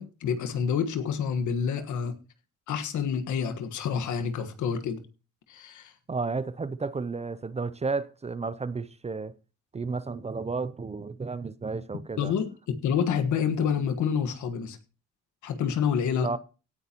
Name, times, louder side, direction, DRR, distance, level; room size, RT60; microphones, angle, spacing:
voice 1, 0.0-2.1 2.7-5.0 5.5-5.9 12.2-14.8 15.4-16.3, left 7 dB, 75° left, 1.5 m, -28 dB
voice 2, 6.1-9.3 9.7-12.3 16.2-16.4, right 4 dB, 20° right, 0.6 m, -32 dB
17.0 x 9.7 x 2.9 m
cardioid pair, 90°, 30 cm